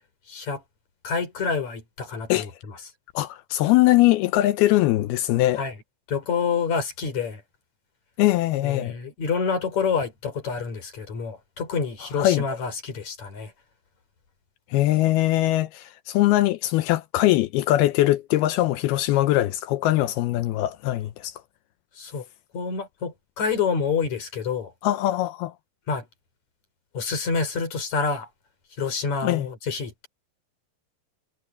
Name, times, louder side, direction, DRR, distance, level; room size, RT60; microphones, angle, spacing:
voice 1, 0.3-0.6 1.0-2.8 5.6-5.8 6.1-7.4 8.6-13.5 22.0-22.3 22.5-24.7 25.9-26.1 26.9-28.3 28.8-30.1, left 5 dB, 40° left, 5.3 m, -28 dB
voice 2, 3.2-5.6 8.2-8.9 12.1-12.4 14.7-21.3 24.8-25.5 29.2-29.5, left 16 dB, 90° left, 2.2 m, -21 dB
omnidirectional pair, 5.4 m